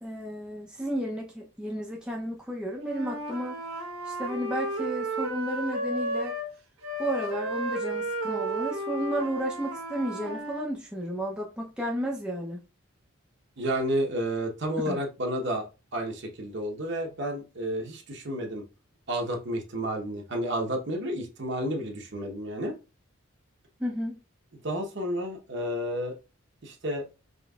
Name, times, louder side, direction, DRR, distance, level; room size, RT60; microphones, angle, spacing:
voice 1, 0.0-3.6 4.1-6.3 7.0-12.6 14.8-15.0 23.8-24.2, right 1 dB, 5° right, 0.6 m, -32 dB
Wind instrument woodwind instrument, 2.8-6.5 6.8-10.7, right 1 dB, 90° right, 1.1 m, -33 dB
voice 2, 13.6-15.7 15.9-18.6 19.1-22.8 24.6-26.1 26.6-27.0, equal, 55° right, 0.9 m, -31 dB
5.1 x 3.1 x 2.3 m
head